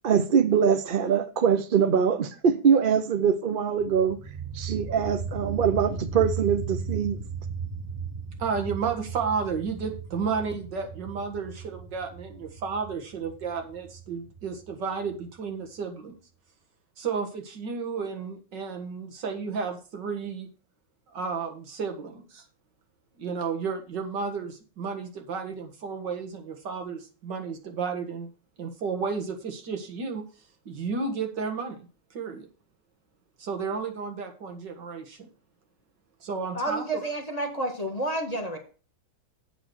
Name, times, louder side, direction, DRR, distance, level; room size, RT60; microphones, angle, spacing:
voice 1, 0.0-4.2 4.5-7.2, right 7 dB, 60° right, 0.5 m, -23 dB
sound 1, 3.8-15.4, right 5 dB, 15° right, 0.8 m, -36 dB
voice 2, 8.4-16.1 17.0-20.5 21.1-22.4 23.2-28.3 28.6-30.2 30.7-31.8 32.1-32.5 33.4-35.3 36.2-36.8, right 5 dB, 80° right, 2.2 m, -32 dB
voice 3, 36.5-38.6, right 1 dB, 20° left, 1.6 m, -30 dB
8.1 x 6.1 x 6.3 m
omnidirectional pair, 1.9 m